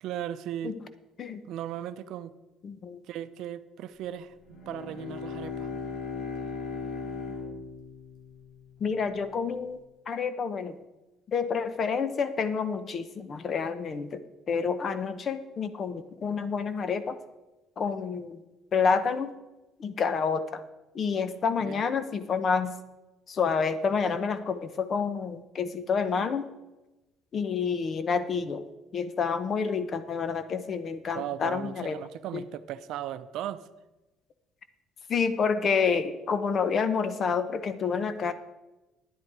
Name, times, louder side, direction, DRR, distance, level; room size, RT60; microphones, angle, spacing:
voice 1, 0.0-0.8 1.5-2.3 3.1-5.7 21.6-21.8 31.1-33.7, right 11 dB, 70° right, 12 dB, 0.6 m, -37 dB
voice 2, 2.6-3.0 8.8-9.8 10.1-10.8 11.3-14.2 14.5-17.2 17.8-18.4 18.7-19.3 19.8-20.6 20.9-22.7 23.3-26.5 27.3-28.6 28.9-32.0 32.3-32.4 35.1-38.3, left 5 dB, 40° left, 12 dB, 0.8 m, -28 dB
Bowed string instrument, 4.4-9.1, left 5 dB, 80° left, 2.6 m, -38 dB
11.0 x 10.0 x 4.8 m, 1.0 s
cardioid pair, 135°, 0 cm